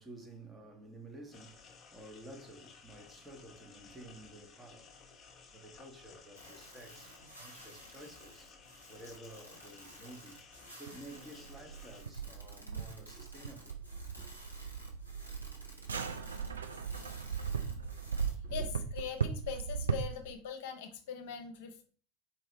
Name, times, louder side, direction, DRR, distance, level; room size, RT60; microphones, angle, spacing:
voice 1, 0.0-4.9 5.5-8.5 8.9-10.4 10.8-13.9 14.2-14.4 18.4-18.7, right 1 dB, 15° right, 1.0 m, -52 dB
sound 1, 1.3-12.0, left 5 dB, 25° left, 0.8 m, -57 dB
sound 2, 6.3-18.3, equal, 90° right, 1.0 m, -54 dB
sound 3, 10.9-20.3, right 6 dB, 75° right, 0.4 m, -38 dB
voice 2, 18.5-21.8, left 7 dB, 60° left, 0.7 m, -41 dB
4.3 x 2.9 x 4.0 m
figure-of-eight pair, 80°, 0 cm